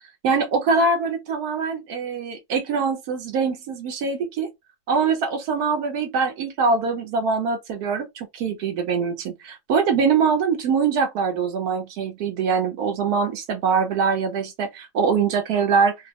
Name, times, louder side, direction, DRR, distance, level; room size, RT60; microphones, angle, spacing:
voice 1, 0.2-4.5 4.9-16.0, right 5 dB, 80° right, 1.1 m, -23 dB
2.9 x 2.0 x 2.7 m
omnidirectional pair, 1.6 m